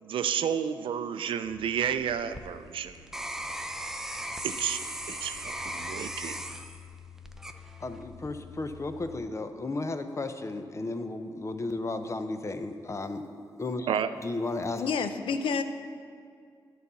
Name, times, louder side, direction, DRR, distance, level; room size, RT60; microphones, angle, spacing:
voice 1, 0.0-3.1 4.4-4.8 5.1-6.4 13.9-14.1, right 8 dB, 80° right, 11 dB, 0.4 m, -31 dB
sound 1, 1.4-9.2, left 9 dB, 65° left, 1.1 m, -51 dB
sound 2, 2.0-8.2 8.7-9.2, right 1 dB, 5° right, 0.6 m, -38 dB
voice 2, 7.8-13.3 13.6-13.9 14.2-14.9, left 2 dB, 35° left, 8 dB, 0.7 m, -34 dB
voice 3, 14.8-15.6, left 5 dB, 80° left, 9 dB, 0.6 m, -29 dB
10.5 x 4.1 x 6.9 m, 2.2 s
cardioid pair, 65°, 9 cm